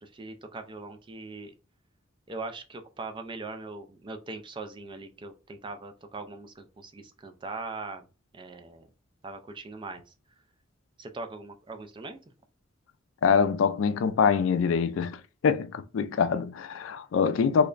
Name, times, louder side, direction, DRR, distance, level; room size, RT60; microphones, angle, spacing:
voice 1, 0.0-1.5 2.3-8.1 8.3-8.9 9.2-10.1 11.0-12.2, right 3 dB, 25° right, 0.4 m, -40 dB
voice 2, 13.2-15.2 15.4-17.7, left 6 dB, 70° left, 0.3 m, -24 dB
3.3 x 2.1 x 3.8 m
head